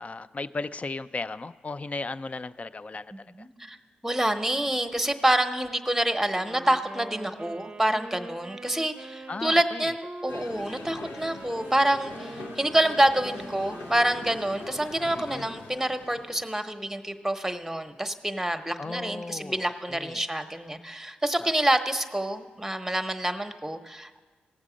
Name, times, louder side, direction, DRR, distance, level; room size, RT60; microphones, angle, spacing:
voice 1, 0.0-3.5 9.3-9.9 15.1-15.5 18.8-20.2 21.4-21.5, left 3 dB, 35° left, 14 dB, 0.4 m, -36 dB
voice 2, 3.1-3.5 4.0-24.2, right 1 dB, 5° right, 7 dB, 1.0 m, -27 dB
Wind instrument woodwind instrument, 6.3-14.9, right 2 dB, 30° right, 0.6 m, -43 dB
sound 1, 10.3-16.5, left 3 dB, 80° left, 0.8 m, -42 dB
17.5 x 7.3 x 5.1 m, 1.4 s
supercardioid pair, 40°, 4 cm